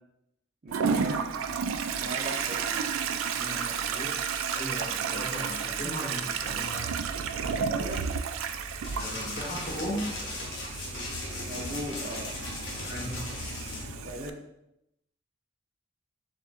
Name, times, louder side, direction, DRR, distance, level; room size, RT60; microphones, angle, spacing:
voice 1, 0.6-1.4 2.0-2.9 7.7-8.1 11.5-12.3 14.0-14.4, right 1 dB, 40° right, -1 dB, 0.6 m, -38 dB
Toilet flush, 0.7-14.3, right 6 dB, 80° right, 0.3 m, -32 dB
voice 2, 3.3-4.2 4.5-6.9 8.9-10.1 12.8-13.2, equal, 35° left, -6 dB, 1.4 m, -37 dB
sound 1, 8.5-14.1, left 2 dB, 80° left, 0.6 m, -44 dB
sound 2, 8.8-13.8, left 2 dB, 50° left, 1.0 m, -38 dB
6.9 x 2.6 x 2.4 m, 0.83 s
head